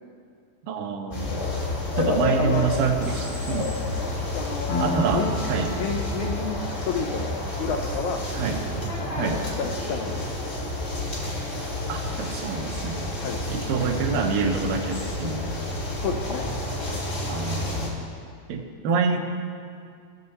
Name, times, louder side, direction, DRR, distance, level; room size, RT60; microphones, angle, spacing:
voice 1, 0.6-1.4 2.0-3.7 4.8-5.2 5.5-5.7 8.3-8.6 9.2-9.4 11.9-13.0 13.5-15.6 17.3-18.0 18.5-19.2, right 5 dB, 85° right, 4 dB, 2.6 m, -26 dB
sound 1, 1.1-17.9, left 1 dB, 40° left, 1.1 m, -30 dB
voice 2, 1.6-2.7 4.3-5.3 5.7-8.2 9.3-10.3 13.2-13.7 15.4-15.5 15.9-16.5 16.8-17.1, left 5 dB, 80° left, 3 dB, 1.7 m, -31 dB
Piano, 4.7-12.1, equal, 60° left, 2.1 m, -37 dB
16.5 x 6.7 x 4.1 m, 2.2 s
omnidirectional pair, 4.0 m